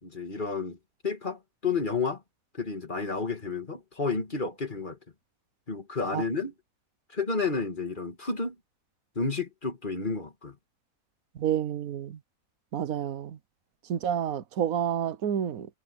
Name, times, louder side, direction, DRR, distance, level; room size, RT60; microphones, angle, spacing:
voice 1, 0.0-0.8 1.0-2.2 2.5-5.0 5.7-6.5 7.1-8.5 9.2-10.6, left 4 dB, 35° left, 2.3 m, -31 dB
voice 2, 11.4-12.2 12.7-13.4 13.9-15.7, right 9 dB, 85° right, 1.3 m, -29 dB
omnidirectional pair, 1.5 m